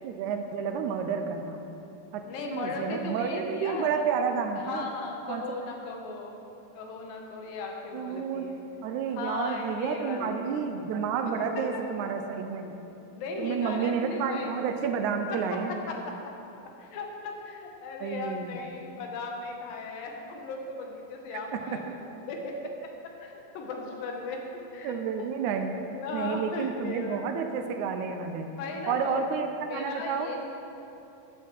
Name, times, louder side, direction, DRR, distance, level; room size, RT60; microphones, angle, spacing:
voice 1, 0.0-1.6 2.1-2.2 2.5-4.9 5.3-5.4 7.9-8.5 8.8-12.7 13.4-15.8 18.0-18.6 21.7-21.9 24.8-25.7 26.1-28.5 28.9-30.3, right 6 dB, 80° right, 6 dB, 1.7 m, -30 dB
voice 2, 2.2-3.9 4.6-6.4 6.7-8.6 9.1-10.6 11.5-11.8 13.1-14.5 15.3-16.2 16.8-22.0 22.3-22.9 23.2-24.5 24.7-25.3 26.0-27.3 28.5-29.2 29.7-30.4, left 3 dB, 80° left, 1 dB, 2.9 m, -37 dB
13.0 x 8.3 x 4.6 m, 2.9 s
omnidirectional pair, 4.1 m